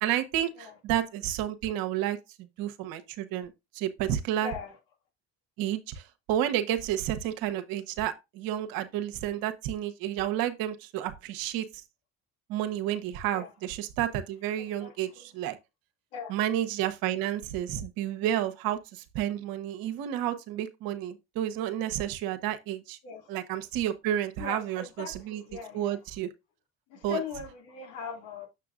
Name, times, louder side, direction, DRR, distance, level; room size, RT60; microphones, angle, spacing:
voice 1, 0.0-4.5 5.6-6.0 6.3-11.7 12.5-15.6 16.3-23.0 23.3-25.4 25.7-26.3 27.0-27.2, right 11 dB, 70° right, 1.0 m, -31 dB
voice 2, 4.4-4.8 13.3-13.5 14.6-15.3 16.1-16.4 23.0-23.3 24.4-26.0 26.9-28.5, left 6 dB, 70° left, 2.3 m, -40 dB
6.9 x 6.7 x 2.4 m
hypercardioid pair, 65°, 37 cm